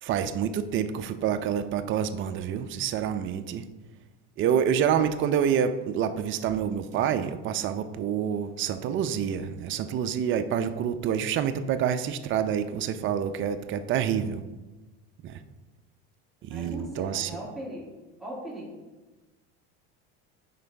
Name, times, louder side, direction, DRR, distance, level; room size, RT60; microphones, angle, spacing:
voice 1, 0.0-3.7 4.4-14.4 15.2-15.4 16.4-17.3, right 8 dB, 40° right, 10 dB, 0.5 m, -27 dB
voice 2, 16.5-17.9 18.2-18.7, right 1 dB, ahead, -7 dB, 2.4 m, -39 dB
9.5 x 4.6 x 3.4 m, 1.1 s
supercardioid pair, 110°, 31 cm